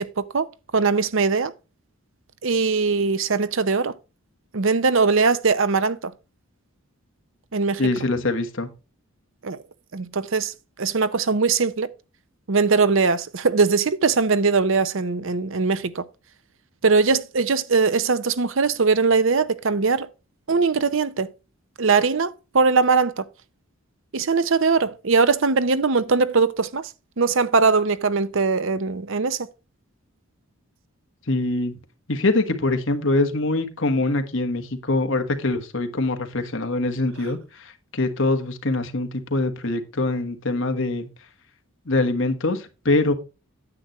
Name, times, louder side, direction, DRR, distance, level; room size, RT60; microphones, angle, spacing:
voice 1, 0.0-1.5 2.4-3.9 4.5-6.1 7.5-7.8 9.4-9.6 9.9-10.5 10.8-11.9 12.5-16.0 16.8-20.1 20.5-21.3 21.8-23.2 24.1-26.8 27.2-29.4, right 4 dB, 60° right, 0.7 m, -21 dB
voice 2, 7.8-8.7 31.3-31.7 32.1-41.1 41.9-43.1, left 2 dB, 60° left, 1.4 m, -24 dB
9.8 x 7.9 x 3.1 m
head